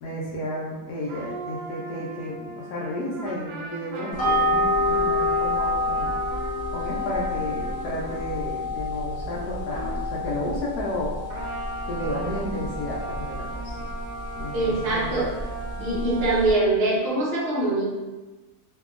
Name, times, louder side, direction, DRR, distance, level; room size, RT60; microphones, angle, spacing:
voice 1, 0.0-6.1 6.7-11.1 11.9-13.8 14.4-15.1 15.8-16.0, left 1 dB, 80° left, -4 dB, 1.1 m, -32 dB
sound 1, 1.1-8.6 9.7-10.1 11.3-16.6, right 3 dB, 85° right, 1.1 m, -38 dB
sound 2, 4.2-16.5, left 1 dB, 25° left, 0.8 m, -28 dB
voice 2, 14.5-15.3 15.8-17.8, right 2 dB, 45° right, -7 dB, 1.0 m, -23 dB
2.8 x 2.6 x 2.4 m, 1.2 s
omnidirectional pair, 1.7 m